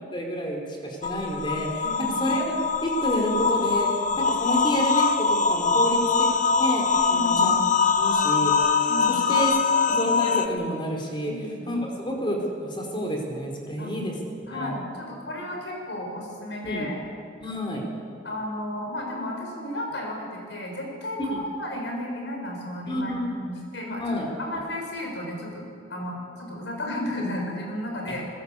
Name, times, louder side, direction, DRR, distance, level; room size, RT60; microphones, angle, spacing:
voice 1, 0.1-1.9 2.2-2.6 2.8-3.9 4.2-6.8 7.1-7.6 8.0-8.5 8.8-9.5 9.9-11.3 11.7-14.1 14.5-14.7 16.6-16.9 17.4-17.8 21.3-21.4 22.9-23.3 24.0-24.3, equal, 25° left, 0 dB, 4.5 m, -29 dB
sound 1, 1.0-10.5, left 5 dB, 40° left, 1.1 m, -23 dB
voice 2, 1.8-2.2 3.8-4.2 7.1-7.5 8.9-9.2 11.3-11.8 13.8-13.9 14.5-17.0 18.2-24.0 24.4-28.2, left 1 dB, 70° left, 1 dB, 6.5 m, -33 dB
20.5 x 20.5 x 8.5 m, 2.3 s
head